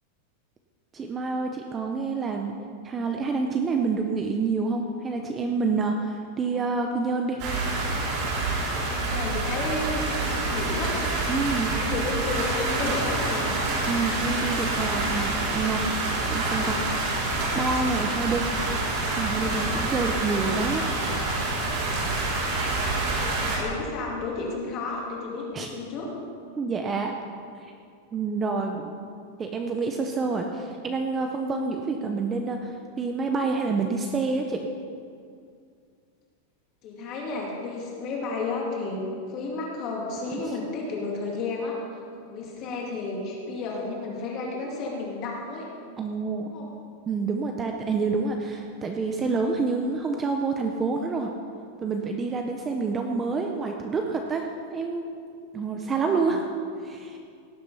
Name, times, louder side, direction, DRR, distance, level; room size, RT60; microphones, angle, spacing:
voice 1, 0.9-2.5 2.8-7.4 11.3-11.8 13.9-15.8 16.3-16.8 17.5-18.5 19.1-21.0 25.5-25.7 26.6-27.1 28.1-28.9 29.4-34.7 40.5-40.6 46.0-46.5 47.1-51.3 51.8-55.1 55.5-56.5 56.8-57.2, right 4 dB, 15° right, 3 dB, 0.5 m, -28 dB
sound 1, 7.4-23.6, right 2 dB, 35° right, 3.5 m, -27 dB
voice 2, 8.9-10.9 11.8-13.5 22.8-26.1 28.5-28.7 36.8-41.8 42.3-45.7 46.4-46.7 55.9-56.4, left 3 dB, 30° left, -2 dB, 2.5 m, -32 dB
17.5 x 7.7 x 5.6 m, 2.3 s
supercardioid pair, 180°, 0 cm